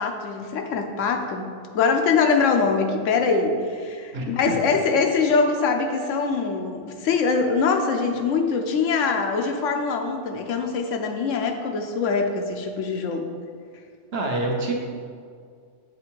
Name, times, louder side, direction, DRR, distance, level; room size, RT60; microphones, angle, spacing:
voice 1, 0.0-1.5 1.7-13.3, left 4 dB, 85° left, 4 dB, 1.0 m, -23 dB
voice 2, 4.1-4.6 14.1-14.7, right 2 dB, 60° right, 0 dB, 1.0 m, -26 dB
7.7 x 3.6 x 4.5 m, 2.2 s
omnidirectional pair, 1.2 m